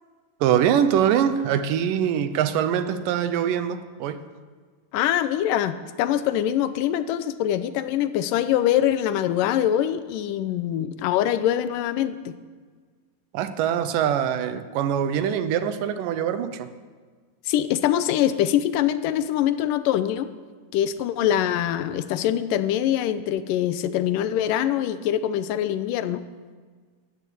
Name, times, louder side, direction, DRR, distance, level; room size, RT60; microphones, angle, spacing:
voice 1, 0.4-4.2 13.3-16.7, right 9 dB, 80° right, 11 dB, 2.5 m, -23 dB
voice 2, 4.9-12.3 17.5-20.3 20.7-26.3, left 11 dB, 85° left, 12 dB, 2.3 m, -24 dB
14.0 x 11.0 x 8.6 m, 1.5 s
omnidirectional pair, 3.9 m